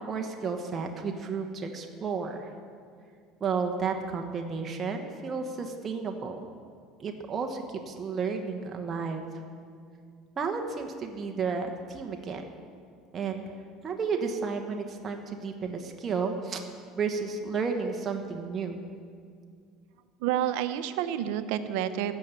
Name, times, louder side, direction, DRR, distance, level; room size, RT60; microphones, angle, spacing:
voice 1, 0.0-2.5 3.4-6.4 7.0-9.3 10.4-12.4 13.1-13.4 13.8-16.6 17.0-18.8, right 5 dB, 30° right, 3 dB, 1.1 m, -32 dB
voice 2, 20.2-22.1, right 11 dB, 75° right, 10 dB, 0.8 m, -29 dB
14.0 x 6.9 x 8.9 m, 2.2 s
supercardioid pair, 125°, 0 cm